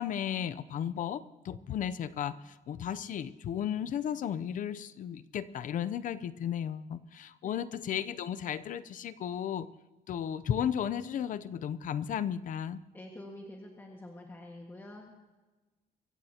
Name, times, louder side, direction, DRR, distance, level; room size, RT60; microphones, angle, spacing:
voice 1, 0.0-9.7 10.1-12.8, left 9 dB, 60° left, 15 dB, 0.7 m, -34 dB
voice 2, 12.9-15.2, left 1 dB, 15° left, 0 dB, 1.7 m, -47 dB
24.0 x 15.5 x 2.9 m, 1.2 s
cardioid pair, 135°, 15 cm